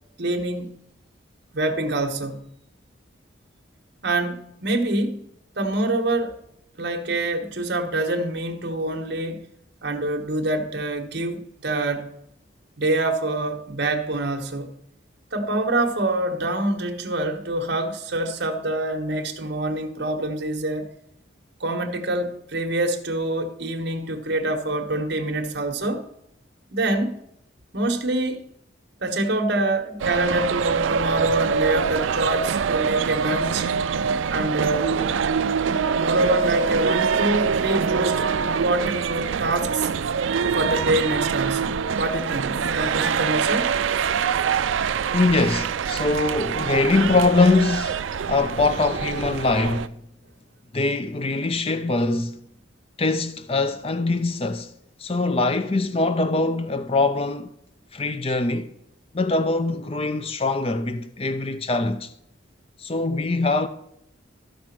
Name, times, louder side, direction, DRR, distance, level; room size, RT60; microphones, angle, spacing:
voice 1, 0.2-0.7 1.5-2.4 4.0-5.2 5.6-6.4 6.8-9.4 9.8-12.1 12.8-14.8 15.3-20.9 21.6-26.0 26.7-27.2 27.7-28.4 29.0-33.7 34.3-35.0 36.0-39.9 40.5-43.7, right 2 dB, 65° right, 1.3 m, -25 dB
sound 1, 30.0-49.9, right 6 dB, 80° right, 0.4 m, -24 dB
voice 2, 45.1-50.0 50.7-52.4 53.0-54.7 55.0-57.5 57.9-58.7 59.1-62.1 62.8-63.7, left 3 dB, 30° left, 0.5 m, -23 dB
13.5 x 5.1 x 6.0 m
head